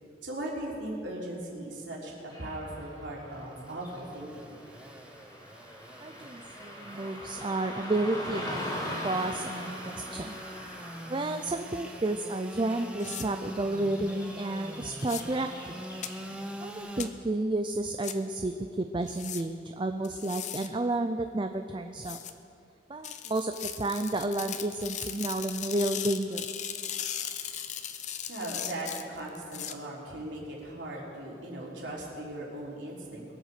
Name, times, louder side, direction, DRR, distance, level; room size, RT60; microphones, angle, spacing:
voice 1, 0.2-4.6 28.3-33.3, right 1 dB, 80° right, -3 dB, 3.7 m, -38 dB
Car passing by / Traffic noise roadway noise, 2.3-16.6, equal, 20° left, 2.7 m, -42 dB
Engine / Sawing, 3.3-17.1, right 1 dB, 5° right, 0.9 m, -44 dB
voice 2, 6.0-8.5 9.0-10.4 11.1-15.9 16.6-22.2 22.9-26.5, right 2 dB, 25° right, 7 dB, 0.5 m, -31 dB
sound 1, 13.0-13.2 15.0-15.2 16.0-16.1 17.0-17.1 18.0-18.1 19.1-19.4 20.0-20.7 22.0-22.3 23.0-29.7, left 9 dB, 40° left, 0.7 m, -37 dB
22.0 x 8.1 x 6.7 m, 2.6 s
head